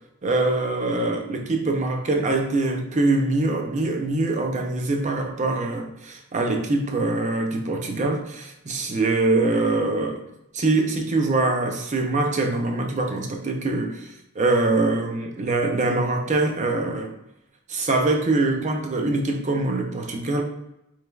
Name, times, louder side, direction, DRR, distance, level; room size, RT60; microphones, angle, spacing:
voice 1, 0.2-10.3 10.5-17.1 17.7-20.4, right 2 dB, 35° right, 3 dB, 0.5 m, -23 dB
4.5 x 3.2 x 2.3 m, 0.88 s
head